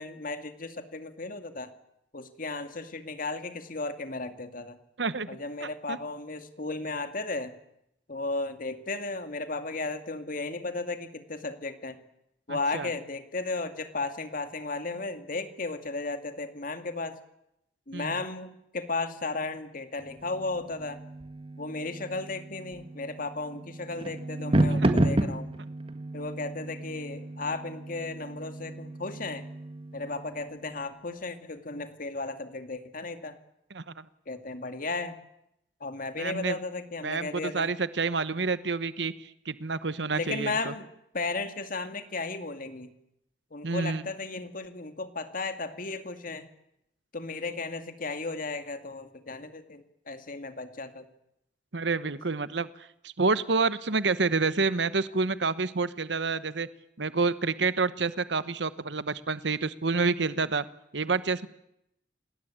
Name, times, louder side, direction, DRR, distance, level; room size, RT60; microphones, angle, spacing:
voice 1, 0.0-1.7 2.1-4.8 5.3-7.5 8.1-12.0 12.5-17.2 17.9-21.0 21.6-25.5 26.1-29.5 29.9-33.4 34.3-35.2 35.8-37.7 40.1-40.9 41.1-42.9 43.5-46.5 47.1-51.1, left 3 dB, 50° left, 8 dB, 2.3 m, -35 dB
voice 2, 5.0-5.3 5.6-6.0 12.5-12.9 17.9-18.1 24.7-24.9 33.7-34.0 36.2-36.6 37.0-40.7 43.6-44.0 51.7-56.7 57.0-60.6 60.9-61.5, right 4 dB, 75° right, 15 dB, 1.1 m, -28 dB
sound 1, 20.0-30.8, right 1 dB, 30° right, 1.9 m, -32 dB
28.0 x 20.5 x 8.9 m, 0.80 s
head